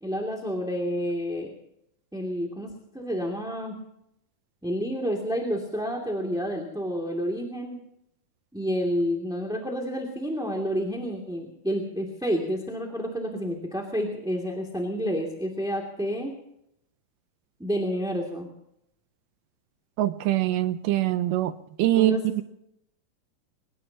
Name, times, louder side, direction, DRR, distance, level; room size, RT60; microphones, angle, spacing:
voice 1, 0.0-1.5 2.1-3.8 4.6-7.8 8.5-16.3 17.6-18.5 22.0-22.2, equal, ahead, 0 dB, 1.8 m, -29 dB
voice 2, 20.0-21.5 21.8-22.4, right 14 dB, 80° right, 11 dB, 2.3 m, -23 dB
23.0 x 21.0 x 2.9 m, 0.78 s
omnidirectional pair, 4.0 m